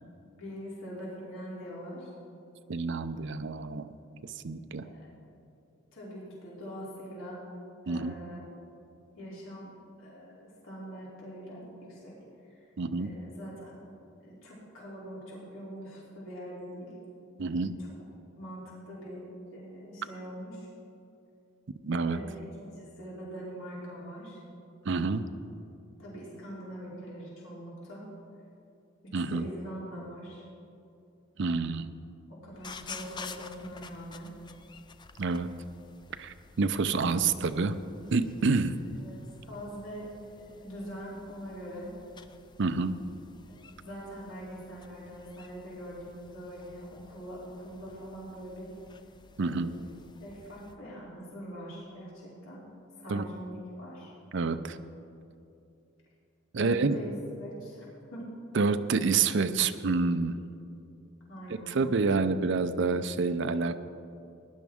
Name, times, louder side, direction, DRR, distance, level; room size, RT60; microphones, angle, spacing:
voice 1, 0.3-2.1 4.8-5.1 5.9-7.4 7.8-8.4 9.1-12.2 12.5-12.7 13.0-13.8 14.2-16.9 17.8-17.9 18.4-19.2 19.5-20.7 22.0-24.4 26.0-28.1 29.0-30.4 32.3-34.3 39.0-40.1 40.4-41.9 43.5-48.7 49.6-49.9 50.2-52.6 53.0-54.1 56.6-57.1 57.4-58.3 61.3-61.9, equal, 85° left, -6 dB, 3.2 m, -43 dB
voice 2, 2.7-3.9 4.2-4.9 7.9-8.2 12.8-13.1 17.4-17.7 21.8-22.2 24.8-25.3 29.1-29.5 31.4-31.9 35.2-35.5 36.2-37.8 38.1-38.8 42.6-43.0 49.4-49.7 53.1-53.2 54.3-54.8 56.5-57.0 58.5-60.4 61.7-63.8, right 4 dB, 65° right, 10 dB, 0.5 m, -28 dB
sound 1, 32.5-50.8, left 5 dB, 20° left, 0.4 m, -51 dB
18.0 x 10.5 x 3.6 m, 2.7 s
head